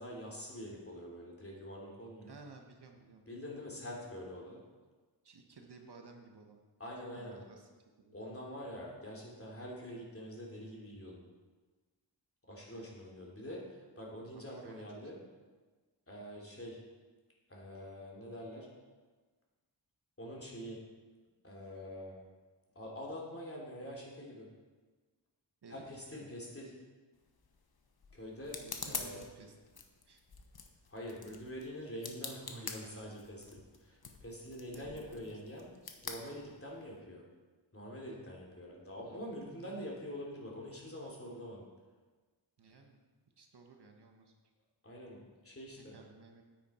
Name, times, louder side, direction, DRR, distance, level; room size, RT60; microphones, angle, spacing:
voice 1, 0.0-2.3 3.3-4.6 6.8-7.4 8.1-11.2 12.5-15.2 16.1-16.8 17.5-18.7 20.2-20.8 21.4-22.2 22.7-24.5 25.7-26.7 28.1-28.6 28.8-29.2 30.9-35.7 36.0-37.2 37.7-41.6 44.8-45.9, equal, 30° left, -3 dB, 3.1 m, -45 dB
voice 2, 2.3-3.2 5.2-6.6 7.1-7.7 8.0-8.2 12.7-13.0 14.1-15.3 25.6-26.4 28.6-30.2 30.7-30.8 34.7-35.4 39.0-39.2 42.6-43.0 43.4-44.3 45.8-46.4, right 3 dB, 65° right, 3 dB, 1.3 m, -56 dB
sound 1, 27.1-37.0, left 5 dB, 55° left, 1.1 m, -47 dB
9.3 x 9.2 x 4.4 m, 1.3 s
wide cardioid pair, 70°, 44 cm